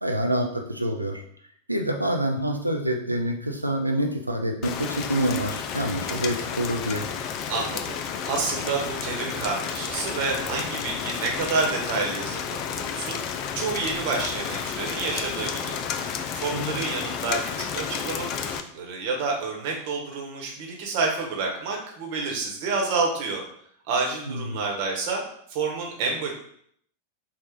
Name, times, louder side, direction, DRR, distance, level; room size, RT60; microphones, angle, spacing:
voice 1, 0.0-1.2 1.7-7.1 16.5-16.8 24.3-24.6, right 1 dB, 85° right, 3 dB, 0.5 m, -27 dB
Rain, 4.6-18.6, left 7 dB, 40° left, 0.3 m, -31 dB
voice 2, 7.5-13.2 13.5-15.8 16.3-23.4 23.9-25.2 25.5-26.3, right 4 dB, 45° right, 0 dB, 1.1 m, -29 dB
4.3 x 2.4 x 3.6 m, 0.65 s
figure-of-eight pair, 90°, 0 cm